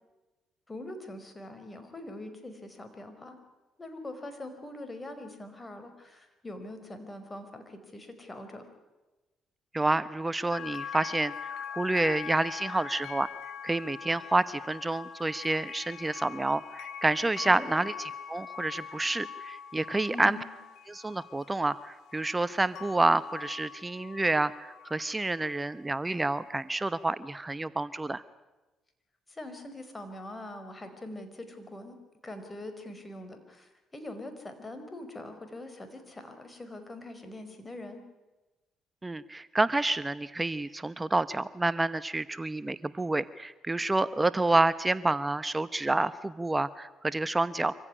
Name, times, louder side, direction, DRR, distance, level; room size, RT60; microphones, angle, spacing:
voice 1, 0.7-3.4 3.8-8.7 17.5-17.8 20.1-20.5 29.3-32.0 32.2-38.0, left 1 dB, 20° left, 8 dB, 5.0 m, -43 dB
voice 2, 9.7-13.3 13.6-20.4 20.9-28.2 39.0-47.7, right 2 dB, 20° right, 15 dB, 0.9 m, -29 dB
sound 1, 10.5-25.6 26.1-26.5, left 8 dB, 75° left, 1.4 m, -43 dB
25.0 x 15.5 x 9.9 m, 1.1 s
supercardioid pair, 65°, 0 cm